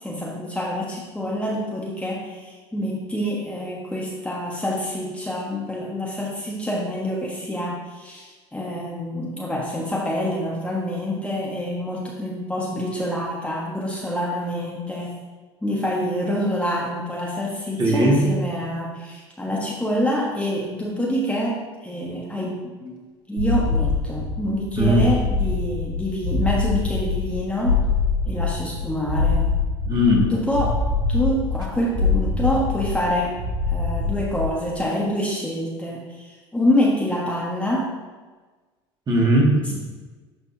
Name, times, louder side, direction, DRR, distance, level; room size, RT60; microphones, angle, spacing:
voice 1, 0.0-15.2 15.6-23.0 23.3-27.8 28.2-29.5 30.3-30.8 31.1-33.4 33.7-37.9, equal, 10° left, -3 dB, 1.3 m, -26 dB
voice 2, 17.8-18.2 24.8-25.1 29.9-30.3 39.1-39.7, equal, 30° right, -2 dB, 2.2 m, -18 dB
sound 1, 23.4-34.7, left 4 dB, 80° right, 1.7 m, -24 dB
12.0 x 4.2 x 2.8 m, 1.3 s
hypercardioid pair, 80°, 14 cm